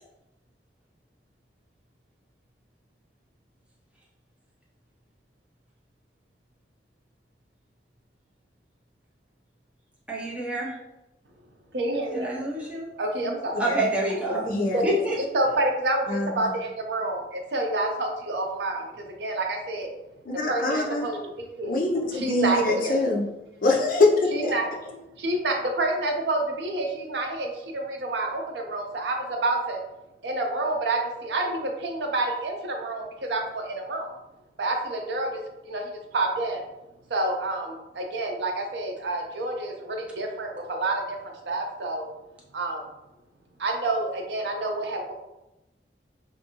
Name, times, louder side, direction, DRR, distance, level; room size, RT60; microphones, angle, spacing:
voice 1, 10.1-10.8 12.1-12.9 13.6-14.4 14.8-15.2, right 1 dB, 5° right, -4 dB, 0.6 m, -27 dB
voice 2, 11.7-12.3 13.0-13.6 14.7-14.8 15.3-19.9 20.5-21.8 22.1-23.0 24.3-24.7 25.2-29.8 30.2-34.1 34.6-36.6 37.1-42.1 42.5-42.9 43.6-45.1, right 2 dB, 70° right, 2 dB, 0.5 m, -28 dB
voice 3, 14.3-14.8 16.1-16.5 20.2-21.1 21.6-23.3 23.6-24.5, left 2 dB, 50° left, 0 dB, 0.5 m, -24 dB
2.6 x 2.5 x 2.8 m, 0.93 s
head